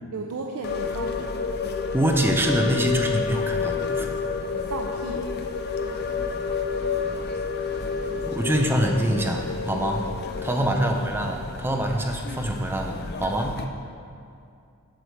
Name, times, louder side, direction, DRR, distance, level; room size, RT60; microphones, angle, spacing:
voice 1, 0.1-1.3 4.3-5.2 10.7-11.5, right 3 dB, 75° right, 1 dB, 0.5 m, -36 dB
sound 1, 0.6-13.7, left 5 dB, 45° left, 0.5 m, -30 dB
voice 2, 1.9-4.1 8.3-10.0 10.4-13.6, right 1 dB, 10° right, 2 dB, 0.5 m, -25 dB
sound 2, 5.0-10.8, right 1 dB, 45° right, 1.4 m, -46 dB
7.8 x 4.7 x 6.4 m, 2.4 s
head